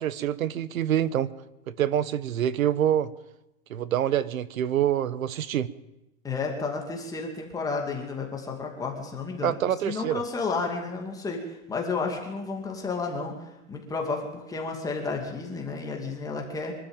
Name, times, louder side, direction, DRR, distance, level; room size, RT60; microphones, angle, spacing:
voice 1, 0.0-1.3 1.7-3.1 3.7-5.7 9.4-10.2, right 10 dB, 80° right, 17 dB, 1.3 m, -26 dB
voice 2, 6.2-9.6 9.8-13.3 13.7-16.7, left 4 dB, 10° left, 0 dB, 2.4 m, -32 dB
24.5 x 12.5 x 9.0 m, 0.93 s
supercardioid pair, 165°, 40 cm